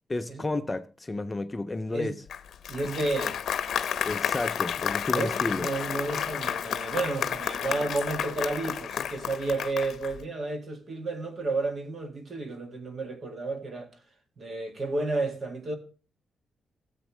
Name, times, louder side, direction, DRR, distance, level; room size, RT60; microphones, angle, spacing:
voice 1, 0.1-2.2 4.0-5.7, left 2 dB, 15° left, 0.4 m, -31 dB
Applause, 2.3-10.2, left 9 dB, 70° left, 0.8 m, -31 dB
voice 2, 2.7-3.4 5.1-13.9 14.4-15.8, right 2 dB, 40° right, 1.8 m, -31 dB
16.5 x 8.0 x 3.1 m
wide cardioid pair, 160°, 0 cm